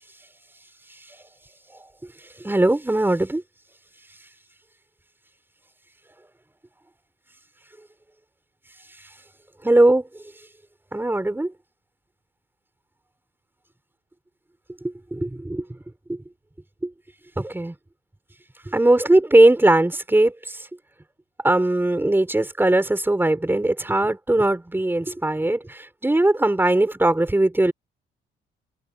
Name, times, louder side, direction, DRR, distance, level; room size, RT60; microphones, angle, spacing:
voice 1, 2.2-3.4 9.0-9.1 9.6-10.2 10.9-11.5 14.8-15.8 16.1-16.2 16.8-16.9 17.4-17.7 18.6-20.7 21.4-27.7, right 1 dB, 10° right, 4.9 m, -20 dB
cardioid pair, 90°, 20 cm